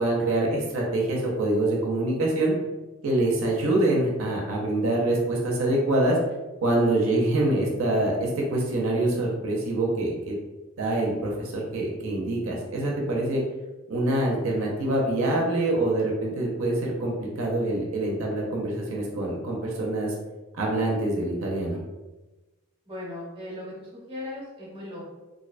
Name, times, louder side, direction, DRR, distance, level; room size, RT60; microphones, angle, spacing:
voice 1, 0.0-2.5 3.0-6.2 6.6-10.4 10.8-13.4 13.9-20.1 20.6-21.8, right 1 dB, 75° right, -2 dB, 0.5 m, -25 dB
voice 2, 22.8-25.0, left 1 dB, 25° right, -5 dB, 0.7 m, -38 dB
2.6 x 2.1 x 2.4 m, 1.1 s
head